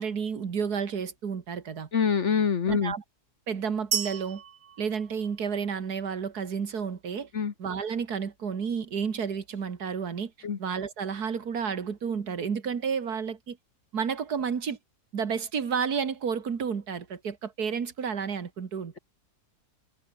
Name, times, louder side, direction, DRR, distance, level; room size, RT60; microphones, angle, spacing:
voice 1, 0.0-1.9 2.7-3.0 3.5-4.4 4.8-7.3 7.6-10.3 10.6-13.6 13.9-14.8 15.1-19.0, right 6 dB, 75° right, 2.3 m, -31 dB
voice 2, 1.9-2.9 7.3-7.5 10.4-10.6, left 6 dB, 50° left, 1.5 m, -25 dB
sound 1, 3.9-5.9, right 8 dB, 50° right, 1.2 m, -34 dB
omnidirectional pair, 1.7 m